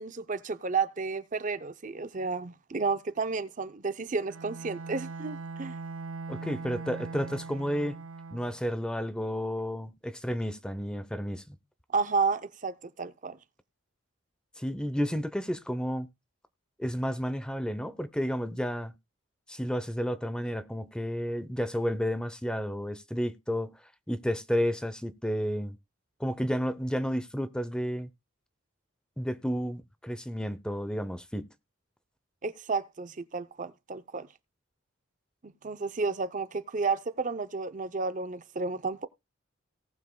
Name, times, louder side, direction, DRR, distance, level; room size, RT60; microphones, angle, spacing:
voice 1, 0.0-5.8 11.9-13.4 32.4-34.3 35.6-39.1, right 4 dB, 35° right, 0.6 m, -31 dB
Bowed string instrument, 4.3-8.6, right 3 dB, 80° right, 0.7 m, -40 dB
voice 2, 6.3-8.0 8.3-11.6 14.6-16.1 16.8-18.9 19.5-23.7 24.1-25.8 26.2-28.1 29.2-31.5, equal, 5° left, 0.6 m, -31 dB
18.5 x 7.3 x 2.2 m
head